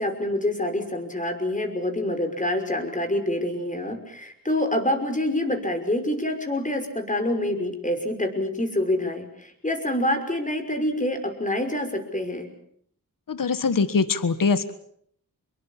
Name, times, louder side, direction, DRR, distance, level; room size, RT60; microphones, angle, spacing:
voice 1, 0.0-12.5, left 1 dB, 20° left, 5 dB, 5.7 m, -26 dB
voice 2, 13.3-14.7, left 4 dB, 65° left, 13 dB, 1.5 m, -23 dB
25.0 x 22.0 x 7.3 m, 0.66 s
cardioid pair, 55°, 36 cm